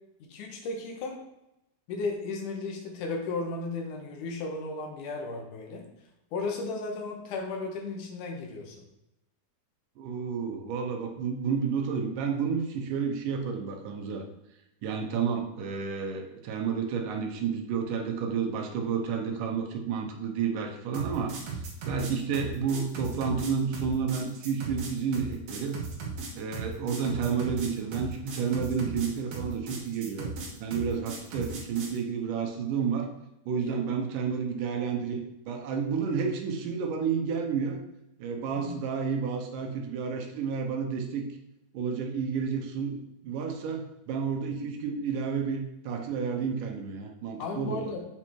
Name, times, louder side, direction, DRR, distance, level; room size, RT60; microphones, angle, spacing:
voice 1, 0.2-1.2 1.9-5.9 6.3-8.8 29.7-29.8 33.5-33.8 38.6-38.8 47.4-48.1, left 3 dB, 80° left, 2 dB, 2.7 m, -35 dB
voice 2, 10.0-14.2 14.8-21.3 21.8-25.8 26.4-30.3 30.6-33.1 33.5-37.8 38.2-41.2 41.7-47.9, right 6 dB, 85° right, 3 dB, 2.6 m, -31 dB
sound 1, 20.9-32.0, right 4 dB, 55° right, 2.0 m, -37 dB
7.5 x 4.4 x 4.5 m, 0.87 s
omnidirectional pair, 3.7 m